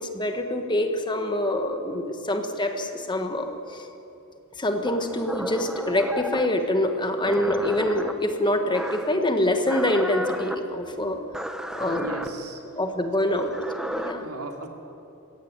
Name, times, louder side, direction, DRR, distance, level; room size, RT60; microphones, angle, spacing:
voice 1, 0.0-3.6 4.6-11.2 11.7-12.2 12.8-13.5 13.8-14.2, left 1 dB, 20° left, 5 dB, 1.6 m, -25 dB
sound 1, 4.8-6.5 7.2-8.1 8.7-9.2 9.6-10.6 11.3-12.3 13.4-14.1, equal, 5° right, 1.0 m, -32 dB
voice 2, 11.8-12.6 13.3-13.6 14.2-14.7, right 3 dB, 90° right, 3 dB, 2.8 m, -39 dB
23.0 x 16.5 x 9.0 m, 2.8 s
head